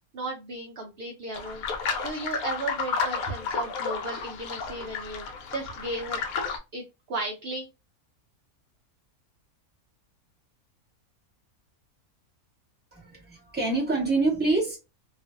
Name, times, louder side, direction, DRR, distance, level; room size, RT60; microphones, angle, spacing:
voice 1, 0.1-5.2 5.5-6.2 6.7-7.7, right 2 dB, 65° right, 0.6 m, -35 dB
sound 1, 1.3-6.6, left 5 dB, 80° left, 1.1 m, -32 dB
voice 2, 12.9-14.8, right 3 dB, 5° right, 1.1 m, -26 dB
2.4 x 2.4 x 2.5 m
omnidirectional pair, 1.5 m